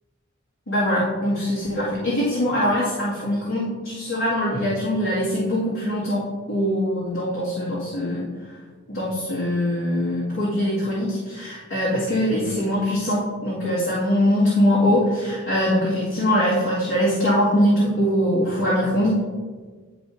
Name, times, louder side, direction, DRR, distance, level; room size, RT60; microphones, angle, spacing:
voice 1, 0.7-8.6 8.9-19.2, equal, 90° left, -10 dB, 2.2 m, -22 dB
10.5 x 5.0 x 2.7 m, 1.5 s
head